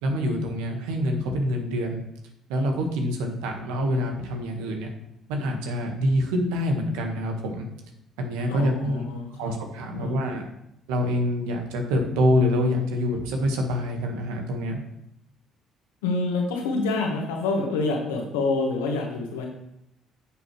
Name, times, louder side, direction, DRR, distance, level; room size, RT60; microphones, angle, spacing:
voice 1, 0.0-2.0 2.5-4.9 5.3-7.6 8.2-9.0 9.4-10.4 10.9-14.8, left 1 dB, 75° right, 3 dB, 1.6 m, -26 dB
voice 2, 8.5-10.3 16.0-19.5, left 3 dB, 80° left, 1 dB, 1.7 m, -27 dB
9.4 x 7.1 x 3.3 m, 0.79 s
hypercardioid pair, 50°, 0 cm